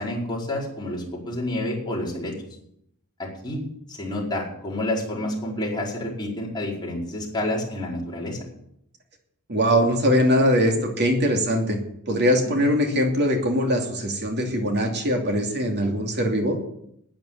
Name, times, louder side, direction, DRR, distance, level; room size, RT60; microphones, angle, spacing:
voice 1, 0.0-2.3 3.2-3.6 3.9-8.4 12.6-12.7, left 1 dB, 20° left, -4 dB, 4.7 m, -29 dB
voice 2, 9.5-11.8 12.1-16.6, equal, 50° right, 3 dB, 2.8 m, -21 dB
11.5 x 9.3 x 8.8 m, 0.75 s
head